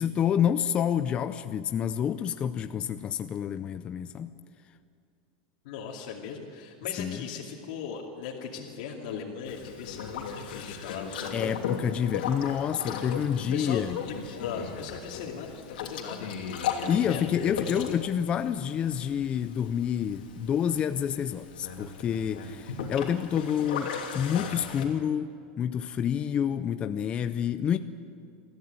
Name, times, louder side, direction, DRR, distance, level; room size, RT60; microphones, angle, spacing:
voice 1, 0.0-4.3 7.0-7.2 11.3-14.0 16.9-27.8, left 9 dB, 20° left, 10 dB, 0.5 m, -28 dB
voice 2, 5.6-11.6 13.5-16.3 16.9-17.2, left 6 dB, 60° left, -2 dB, 2.5 m, -39 dB
Boat Water vehicle, 9.5-24.9, left 6 dB, 85° left, 2.9 m, -37 dB
22.0 x 14.5 x 9.0 m, 2.4 s
supercardioid pair, 160°, 5 cm